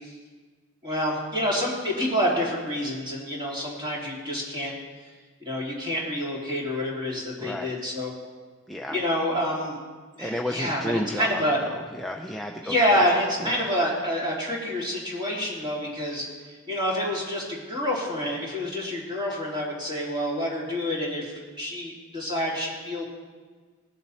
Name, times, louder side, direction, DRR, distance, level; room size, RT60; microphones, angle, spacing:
voice 1, 0.8-4.7 5.4-8.1 8.9-9.8 10.2-10.8 11.1-11.6 12.6-16.2 16.7-23.0, equal, 20° right, -4 dB, 3.2 m, -27 dB
voice 2, 7.4-7.7 8.7-9.0 10.2-12.7 13.4-13.7, equal, ahead, 1 dB, 0.5 m, -32 dB
19.0 x 7.3 x 4.2 m, 1.4 s
head